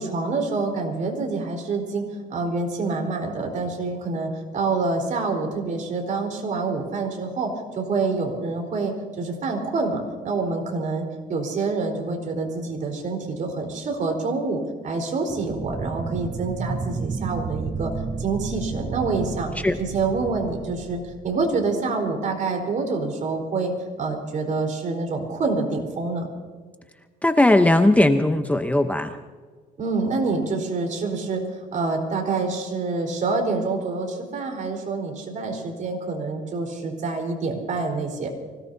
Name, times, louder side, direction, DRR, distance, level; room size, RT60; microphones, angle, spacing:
voice 1, 0.0-17.9 18.2-19.5 19.8-23.7 24.0-26.3 29.8-31.4 31.7-38.3, right 3 dB, 50° right, 2 dB, 4.3 m, -27 dB
sound 1, 15.3-21.7, right 5 dB, 20° right, 0.7 m, -32 dB
voice 2, 27.2-29.2, left 1 dB, 10° left, 7 dB, 0.8 m, -18 dB
25.0 x 18.0 x 2.8 m, 1.5 s
cardioid pair, 110°, 17 cm